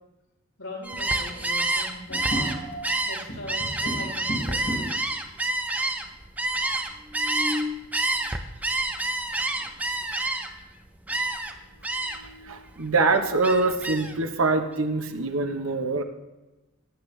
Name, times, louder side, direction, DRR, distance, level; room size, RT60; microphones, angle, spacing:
voice 1, 0.6-2.6 3.1-5.1, left 2 dB, 80° left, -3 dB, 4.4 m, -40 dB
Gull seagull, 0.8-7.6 7.9-10.6 11.1-11.5 11.8-12.3 12.7-14.2, right 2 dB, 10° right, 0.7 m, -28 dB
sound 1, 2.1-2.9 3.3-5.1 5.8-5.9 6.1-6.2 6.9-7.8 9.6-9.7 10.2-10.7 11.1-11.2 11.7-12.6, equal, 50° left, 4.5 m, -34 dB
voice 2, 12.2-16.0, right 3 dB, 70° right, 6 dB, 1.1 m, -24 dB
18.0 x 8.9 x 3.4 m, 1.0 s
head